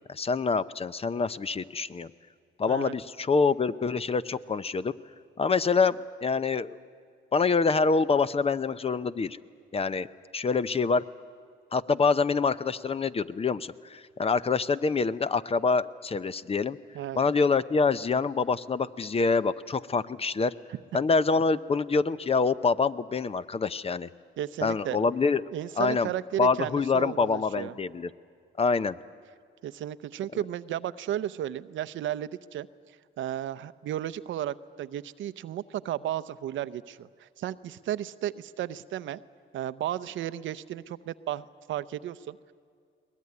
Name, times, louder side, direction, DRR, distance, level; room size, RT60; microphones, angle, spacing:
voice 1, 0.1-2.1 2.6-4.9 5.4-6.0 6.2-6.8 7.3-9.4 9.7-10.1 10.3-11.0 11.7-16.8 17.2-20.5 20.9-24.1 24.6-25.4 25.8-26.1 26.4-28.1 28.6-29.0, left 4 dB, 30° left, 15 dB, 0.7 m, -26 dB
voice 2, 24.4-25.0 25.5-27.7 29.6-32.7 33.2-39.2 39.5-42.4, right 11 dB, 75° right, 15 dB, 0.7 m, -34 dB
22.0 x 19.5 x 9.6 m, 2.2 s
cardioid pair, 90°, 20 cm